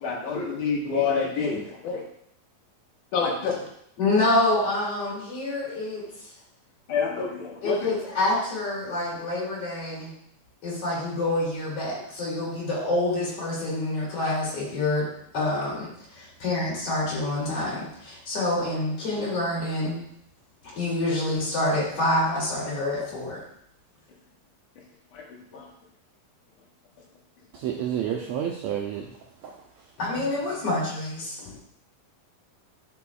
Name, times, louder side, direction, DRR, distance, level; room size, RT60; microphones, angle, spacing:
voice 1, 0.0-2.0 3.1-3.7 6.9-7.9 25.1-25.2 25.5-25.6, left 5 dB, 75° left, -1 dB, 2.6 m, -27 dB
voice 2, 4.0-6.1 7.6-10.1 10.6-20.0 20.8-23.4 30.0-31.5, left 2 dB, 50° left, -6 dB, 3.5 m, -27 dB
voice 3, 27.5-29.1 29.4-29.6, right 9 dB, 85° right, 1 dB, 1.6 m, -29 dB
11.0 x 5.4 x 2.4 m, 0.71 s
omnidirectional pair, 3.8 m